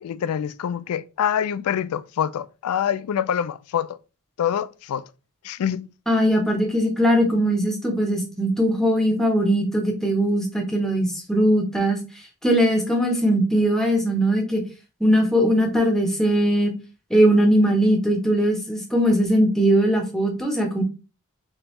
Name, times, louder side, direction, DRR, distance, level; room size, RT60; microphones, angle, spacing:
voice 1, 0.0-4.0 4.4-5.0 5.4-5.9, left 9 dB, 75° left, 0.3 m, -25 dB
voice 2, 6.1-12.0 12.4-14.6 15.0-16.7 17.1-20.8, equal, ahead, 0.8 m, -20 dB
3.5 x 3.4 x 3.1 m
head